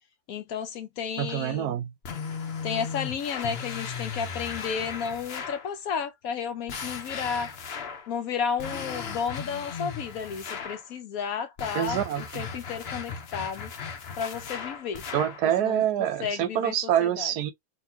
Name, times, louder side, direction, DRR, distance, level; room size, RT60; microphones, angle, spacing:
voice 1, 0.3-1.8 2.6-7.5 8.1-13.7 14.2-15.0 15.6-15.8 16.2-16.7 17.0-17.3, left 7 dB, 70° left, 1.0 m, -32 dB
voice 2, 1.2-1.9 11.7-12.4 15.1-17.5, right 11 dB, 85° right, 1.2 m, -26 dB
sound 1, 2.0-5.7 6.7-8.1 8.6-10.9 11.6-15.4, left 6 dB, 50° left, 0.9 m, -36 dB
3.9 x 2.8 x 2.8 m
omnidirectional pair, 1.7 m